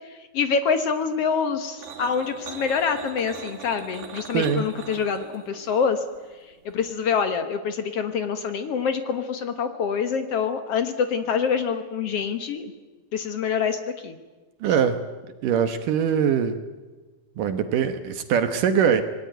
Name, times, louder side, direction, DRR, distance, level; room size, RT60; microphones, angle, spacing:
voice 1, 0.1-6.0 6.7-12.7 13.1-14.2, left 6 dB, 65° left, 9 dB, 1.5 m, -26 dB
sound 1, 1.8-7.1, right 7 dB, 90° right, 4.6 m, -41 dB
voice 2, 4.3-4.7 14.6-15.0 15.4-16.6 17.4-19.0, right 7 dB, 65° right, 9 dB, 2.5 m, -22 dB
26.0 x 20.0 x 9.2 m, 1.3 s
omnidirectional pair, 4.5 m